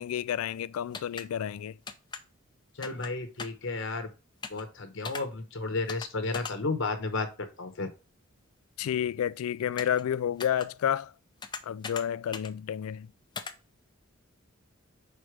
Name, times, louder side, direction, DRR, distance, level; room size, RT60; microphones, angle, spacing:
voice 1, 0.0-1.7 8.8-11.1 11.7-13.1, left 9 dB, 80° left, 0.3 m, -30 dB
sound 1, 0.9-1.2 1.9-2.2 2.8-3.1 3.4-3.6 4.4-4.6 5.0-5.2 5.9-6.1 6.3-6.5 9.8-10.0 10.4-10.7 11.4-12.0 12.3-12.5 13.3-13.5, left 5 dB, 20° left, 0.5 m, -38 dB
voice 2, 2.8-4.1 4.5-7.9, left 3 dB, 60° left, 0.9 m, -33 dB
5.3 x 4.7 x 4.9 m
head